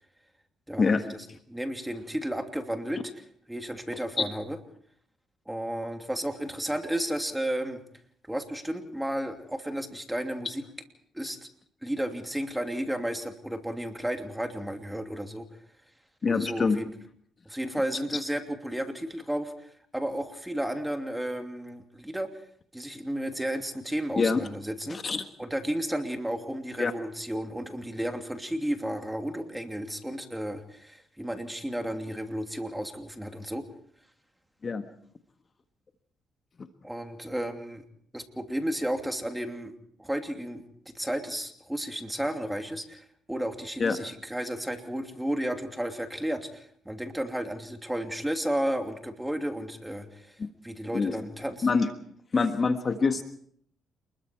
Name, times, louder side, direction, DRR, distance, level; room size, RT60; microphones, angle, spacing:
voice 1, 0.7-1.2 1.5-4.6 5.5-7.8 8.3-10.6 11.1-11.5 11.8-15.5 16.3-16.9 17.4-22.3 22.7-25.0 25.4-33.6 36.8-37.8 38.1-39.7 40.0-50.4 50.6-51.7, right 1 dB, 5° right, 5 dB, 2.9 m, -33 dB
voice 2, 16.2-16.8 24.2-24.4 24.9-25.2 26.8-26.9 34.6-34.8 43.8-44.0 50.4-50.5 50.9-51.2 51.6-51.9 52.3-53.2, left 4 dB, 40° left, 7 dB, 1.5 m, -25 dB
28.5 x 21.0 x 4.6 m, 0.63 s
cardioid pair, 90°, 0 cm